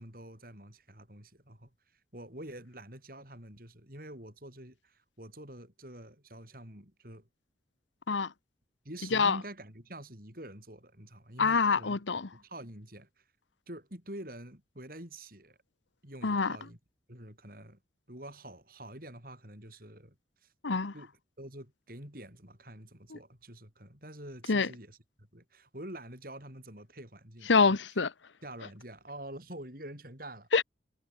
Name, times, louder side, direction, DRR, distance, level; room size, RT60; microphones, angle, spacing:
voice 1, 0.0-1.7 2.1-7.3 8.8-12.0 12.3-13.2 13.7-15.6 16.0-16.8 17.1-17.8 18.1-20.2 20.4-20.5 20.9-27.8 28.4-30.5, right 1 dB, 50° right, 6.8 m, -47 dB
voice 2, 11.4-12.3 16.2-16.5 20.6-20.9 24.5-24.7 27.5-28.1 30.5-30.6, left 4 dB, 80° left, 1.0 m, -25 dB
head